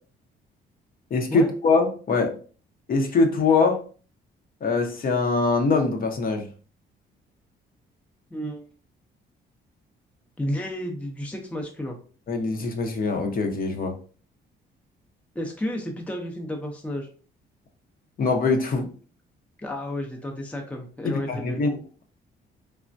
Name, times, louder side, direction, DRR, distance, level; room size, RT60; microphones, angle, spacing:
voice 1, 1.1-2.3 2.9-3.8 4.6-6.5 12.3-13.9 18.2-18.9 21.0-21.7, left 3 dB, 45° left, 4 dB, 0.7 m, -23 dB
voice 2, 8.3-8.7 10.4-12.0 15.3-17.1 19.6-21.6, left 1 dB, 5° left, 2 dB, 0.5 m, -32 dB
3.3 x 2.1 x 2.5 m, 0.39 s
cardioid pair, 90°, 20 cm